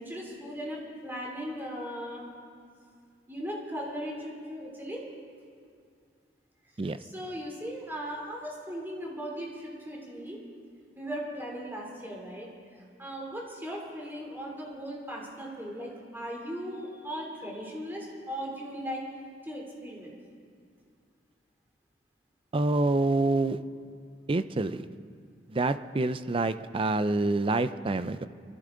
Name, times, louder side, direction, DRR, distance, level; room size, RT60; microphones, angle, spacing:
voice 1, 0.0-2.3 3.3-5.0 7.0-10.4 10.9-12.5 13.0-19.0 19.4-20.2, equal, 10° right, -2 dB, 3.2 m, -38 dB
voice 2, 22.5-23.6 24.3-24.8 25.5-28.3, right 2 dB, 30° right, 13 dB, 0.5 m, -27 dB
23.5 x 15.0 x 3.9 m, 2.2 s
head